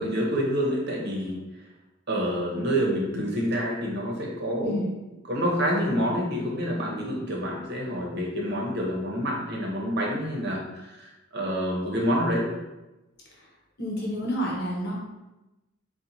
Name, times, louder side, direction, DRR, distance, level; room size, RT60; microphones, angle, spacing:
voice 1, 0.0-1.4 2.1-4.8 5.2-10.6 11.0-12.5, equal, 50° right, -2 dB, 1.0 m, -27 dB
voice 2, 13.8-15.0, equal, 50° left, -4 dB, 1.0 m, -29 dB
4.2 x 2.4 x 4.2 m, 1.0 s
head